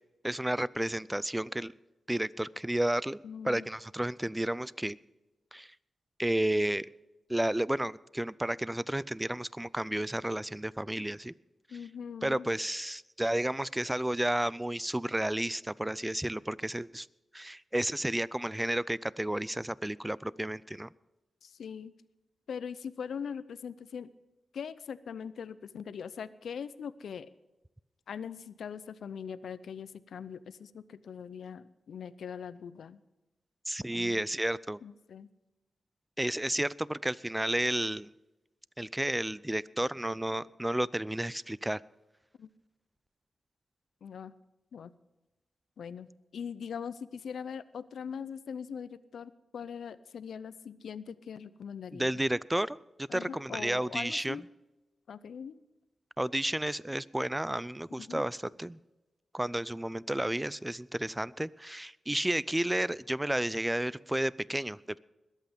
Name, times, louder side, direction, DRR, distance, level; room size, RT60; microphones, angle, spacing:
voice 1, 0.2-1.7 2.1-3.2 3.4-5.0 5.5-5.7 6.2-6.9 7.3-11.3 12.2-17.1 17.3-20.9 33.7-34.8 36.2-38.1 38.8-41.8 51.9-54.4 56.2-58.8 59.3-65.0, right 1 dB, 15° right, 21 dB, 0.5 m, -32 dB
voice 2, 3.2-3.7 11.7-12.5 21.4-21.9 22.5-24.1 24.5-27.3 28.1-33.0 33.9-34.2 34.8-35.3 42.4-42.5 44.0-44.3 44.7-44.9 45.8-52.1 53.1-54.4 55.1-55.6 57.9-58.2, left 7 dB, 80° left, 16 dB, 0.5 m, -41 dB
21.5 x 8.3 x 5.2 m, 1.0 s
cardioid pair, 50°, 0 cm